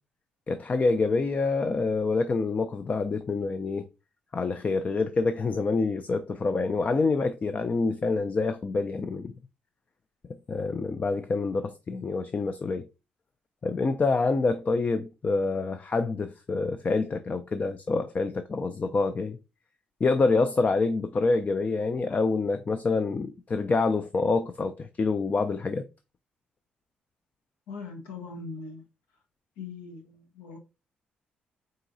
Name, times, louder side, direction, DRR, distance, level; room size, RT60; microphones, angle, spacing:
voice 1, 0.5-3.9 4.3-9.3 10.5-12.9 13.6-19.4 20.0-25.8, left 3 dB, 40° left, 0.4 m, -26 dB
voice 2, 27.7-28.8 29.6-30.6, left 4 dB, 80° left, 0.9 m, -40 dB
3.9 x 3.8 x 2.6 m
hypercardioid pair, 50°, 4 cm